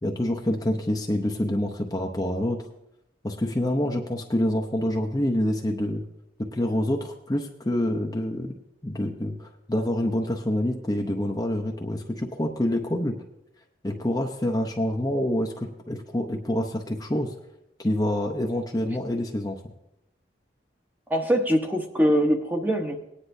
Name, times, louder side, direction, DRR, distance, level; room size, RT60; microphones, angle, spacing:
voice 1, 0.0-2.7 3.2-6.0 6.4-13.2 13.8-17.3 17.8-19.6, left 1 dB, 20° left, 2 dB, 0.7 m, -27 dB
voice 2, 21.1-23.0, equal, 10° right, 3 dB, 0.9 m, -23 dB
18.5 x 9.9 x 2.7 m, 0.85 s
head